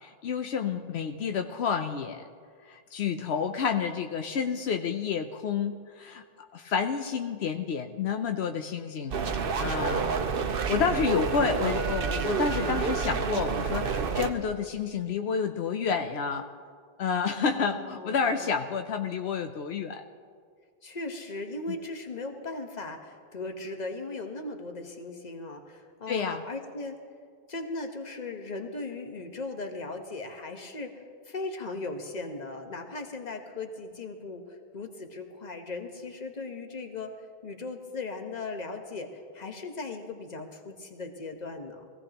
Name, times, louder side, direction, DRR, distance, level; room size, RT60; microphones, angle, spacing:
voice 1, 0.0-2.2 2.7-6.2 6.5-10.1 10.7-16.5 17.0-20.0 26.1-26.4, left 6 dB, 80° left, 6 dB, 0.9 m, -29 dB
sound 1, 9.1-14.3, right 5 dB, 60° right, 0.9 m, -29 dB
voice 2, 17.3-18.5 20.8-27.0 27.5-41.8, left 3 dB, 40° left, 4 dB, 1.3 m, -38 dB
22.0 x 15.5 x 2.9 m, 2.1 s
omnidirectional pair, 1.1 m